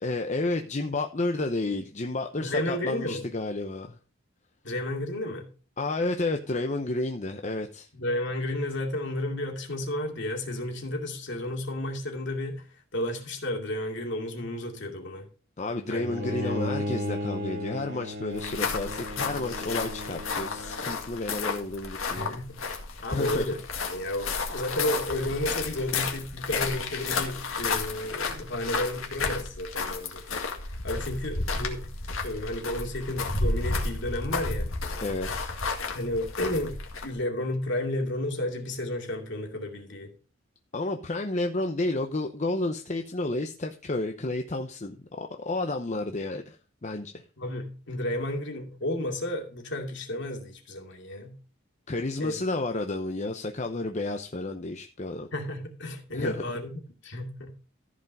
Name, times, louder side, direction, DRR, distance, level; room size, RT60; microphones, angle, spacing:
voice 1, 0.0-4.0 5.8-7.9 15.6-22.4 23.1-23.5 35.0-35.5 40.7-47.2 51.9-55.3 56.1-56.4, left 2 dB, 35° left, 0.7 m, -31 dB
voice 2, 2.4-3.2 4.6-5.5 7.9-12.6 12.9-15.3 15.9-16.6 22.1-22.6 23.0-23.6 23.9-30.2 30.8-31.9 32.2-34.7 35.9-40.1 47.4-51.3 52.2-52.4 55.3-56.7 57.0-57.5, left 1 dB, 60° left, 2.5 m, -32 dB
Bowed string instrument, 16.0-21.2, left 1 dB, 50° right, 2.1 m, -35 dB
sound 1, 18.3-37.2, left 4 dB, 75° left, 2.0 m, -32 dB
14.5 x 5.1 x 5.3 m
head